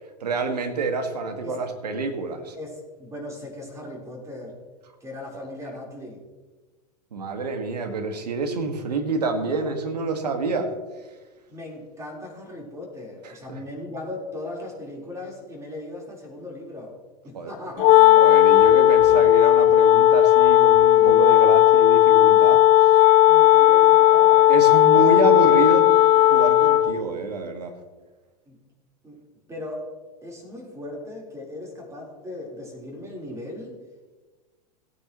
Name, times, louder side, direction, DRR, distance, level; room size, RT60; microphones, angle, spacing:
voice 1, 0.2-2.6 5.3-5.5 7.1-10.7 13.2-13.6 17.3-17.5 18.2-23.0 24.5-25.9 26.3-27.7, right 3 dB, 75° right, 6 dB, 1.7 m, -27 dB
voice 2, 2.5-4.6 5.0-6.2 11.5-16.9 17.2-18.0 23.3-25.1 28.5-28.6 29.0-29.2 29.5-29.9 30.2-33.8, left 1 dB, 15° right, -1 dB, 3.8 m, -38 dB
Wind instrument woodwind instrument, 17.8-27.0, left 13 dB, 35° left, 0.4 m, -15 dB
17.0 x 9.5 x 3.0 m, 1.3 s
figure-of-eight pair, 95°, 21 cm